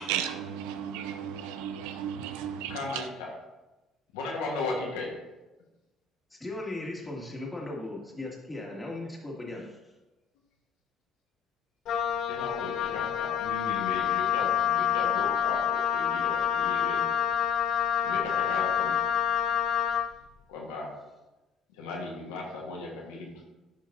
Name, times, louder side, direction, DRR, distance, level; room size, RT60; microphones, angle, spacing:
voice 1, 0.0-2.8, right 9 dB, 80° right, 8 dB, 0.5 m, -34 dB
voice 2, 2.7-3.4 4.1-5.1 12.3-17.1 18.0-19.1 20.5-21.0 21.7-23.4, left 2 dB, 85° left, -1 dB, 1.4 m, -36 dB
voice 3, 6.3-9.9, left 2 dB, 15° left, -2 dB, 2.2 m, -37 dB
Wind instrument woodwind instrument, 11.9-20.1, left 9 dB, 65° left, 0.3 m, -27 dB
10.5 x 5.2 x 2.7 m, 1.1 s
hypercardioid pair, 60°, 0 cm